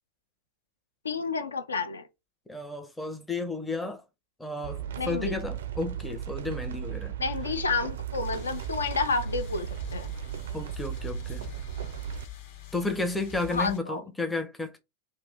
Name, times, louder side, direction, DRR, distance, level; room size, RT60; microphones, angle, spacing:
voice 1, 1.0-2.1 5.0-5.3 7.2-10.1 13.5-14.0, left 4 dB, 75° left, 0.4 m, -30 dB
voice 2, 2.5-4.0 4.4-7.2 10.5-11.5 12.7-14.8, left 3 dB, 5° left, 0.5 m, -32 dB
sound 1, 4.6-12.2, right 10 dB, 60° right, 0.4 m, -36 dB
sound 2, 8.2-13.8, left 11 dB, 50° left, 0.8 m, -45 dB
2.6 x 2.3 x 3.3 m
figure-of-eight pair, 90°, 0 cm